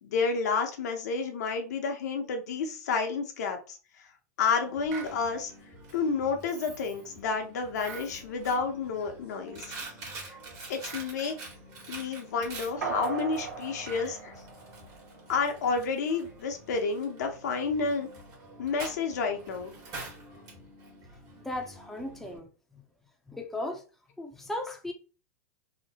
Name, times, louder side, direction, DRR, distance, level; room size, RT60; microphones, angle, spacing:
voice 1, 0.0-3.8 4.4-5.5 5.9-9.7 10.3-10.4 10.7-11.4 11.9-14.4 15.3-18.1 18.6-19.7, left 5 dB, 75° left, 0.7 m, -30 dB
Coin (dropping), 4.6-22.4, right 2 dB, 40° right, 1.3 m, -46 dB
sound 1, 4.9-5.2 7.8-8.1 10.8-11.1 13.8-14.1, right 5 dB, 65° right, 0.8 m, -43 dB
sound 2, 12.8-15.4 15.7-15.8, right 5 dB, 80° right, 1.3 m, -37 dB
voice 2, 21.4-22.8 23.3-23.8 24.2-24.9, left 1 dB, 5° left, 0.5 m, -36 dB
2.9 x 2.0 x 2.8 m
hypercardioid pair, 110°, 9 cm